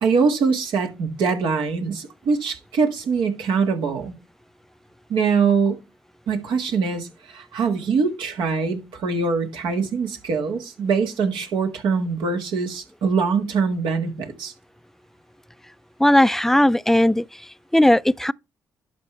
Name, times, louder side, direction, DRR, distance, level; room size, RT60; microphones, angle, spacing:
voice 1, 0.0-4.2 5.1-5.8 6.3-14.5, right 5 dB, 80° right, 1.7 m, -23 dB
voice 2, 16.0-18.3, left 1 dB, 5° left, 0.4 m, -18 dB
11.5 x 5.3 x 3.2 m
supercardioid pair, 50°, 8 cm